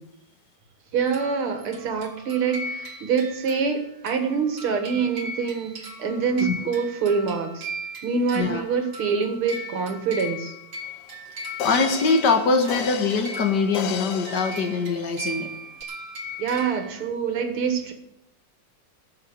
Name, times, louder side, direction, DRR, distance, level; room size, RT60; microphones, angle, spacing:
voice 1, 0.9-7.7 8.0-10.5 16.4-17.9, right 5 dB, 85° right, 2.5 m, -25 dB
sound 1, 1.0-17.1, equal, 50° right, 2.3 m, -38 dB
sound 2, 10.9-11.0 11.6-15.3 15.8-15.9, left 8 dB, 70° left, 0.7 m, -34 dB
voice 2, 11.6-15.5, left 4 dB, 55° left, 2.1 m, -23 dB
13.0 x 7.2 x 8.0 m
omnidirectional pair, 2.3 m